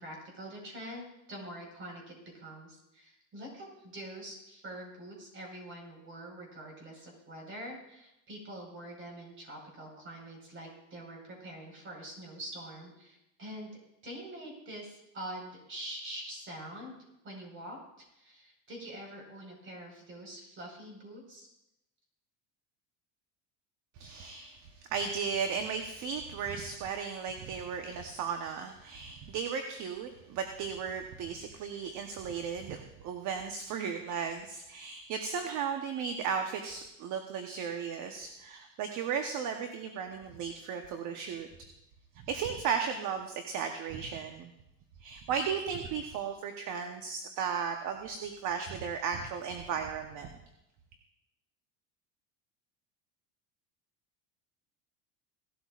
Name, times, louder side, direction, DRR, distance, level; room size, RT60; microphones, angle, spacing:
voice 1, 0.0-13.7 14.0-17.0 17.2-17.8 18.1-21.5, right 1 dB, 30° right, 0 dB, 4.9 m, -45 dB
voice 2, 24.0-41.5 42.1-44.5 45.0-50.4, right 6 dB, 50° right, 5 dB, 1.1 m, -35 dB
17.5 x 12.5 x 2.5 m, 0.86 s
supercardioid pair, 135°, 39 cm